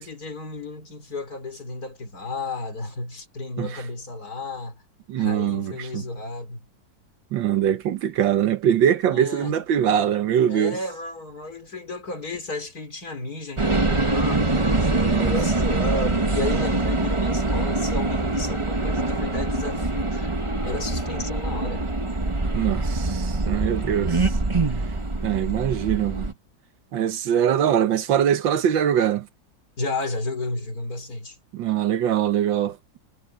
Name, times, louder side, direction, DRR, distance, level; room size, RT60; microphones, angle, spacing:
voice 1, 0.0-4.8 5.2-6.7 9.1-9.5 10.5-20.4 20.6-21.8 29.8-31.4, left 2 dB, 55° left, 4.5 m, -33 dB
voice 2, 5.1-6.0 7.3-10.8 15.1-15.3 22.5-24.3 25.2-26.3 26.9-29.3 31.5-32.8, right 9 dB, 90° right, 1.8 m, -22 dB
sound 1, 13.6-26.3, right 2 dB, 20° right, 1.2 m, -24 dB
omnidirectional pair, 2.0 m